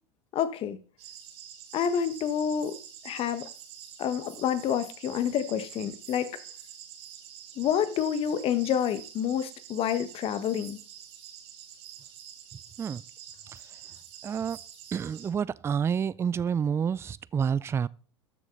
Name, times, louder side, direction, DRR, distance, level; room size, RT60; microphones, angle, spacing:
voice 1, 0.3-0.8 1.7-2.8 3.0-3.5 4.0-6.4 7.6-10.8, left 9 dB, 40° left, 1.4 m, -28 dB
sound 1, 1.0-15.3, right 9 dB, 65° right, 2.2 m, -47 dB
voice 2, 14.2-14.6 14.9-17.9, right 7 dB, 20° right, 0.4 m, -29 dB
13.0 x 7.4 x 4.0 m
hypercardioid pair, 90°, 14 cm